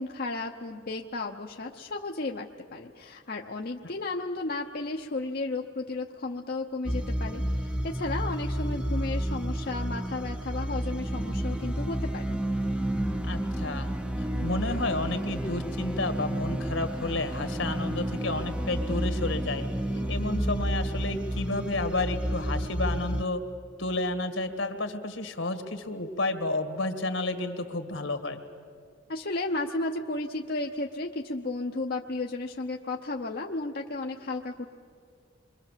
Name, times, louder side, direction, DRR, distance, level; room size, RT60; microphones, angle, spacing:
voice 1, 0.0-12.4 20.0-20.1 29.1-34.7, left 2 dB, 50° left, 1 dB, 0.8 m, -33 dB
sound 1, 6.9-23.2, right 1 dB, 5° right, 0.6 m, -31 dB
voice 2, 13.3-13.9 14.2-19.7 20.1-23.4 23.8-28.4, left 2 dB, 75° left, 8 dB, 1.8 m, -31 dB
28.0 x 23.0 x 7.4 m, 2.2 s
head